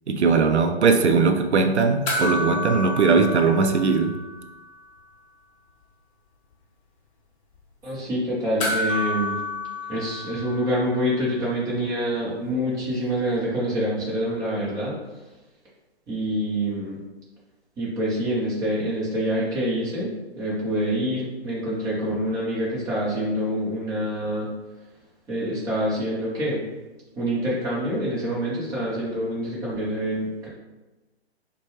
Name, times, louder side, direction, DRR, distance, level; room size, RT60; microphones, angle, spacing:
voice 1, 0.1-4.2, right 4 dB, 85° right, 5 dB, 0.5 m, -19 dB
sound 1, 2.1-4.7 5.0-5.1 8.6-11.2 13.3-13.4, left 2 dB, 30° left, 0.7 m, -30 dB
voice 2, 7.8-9.4 9.9-15.0 16.1-17.0 17.8-24.5 25.3-26.6 27.2-30.5, equal, 10° right, -7 dB, 0.8 m, -26 dB
4.1 x 2.2 x 3.2 m, 1.1 s
figure-of-eight pair, 135°, 33 cm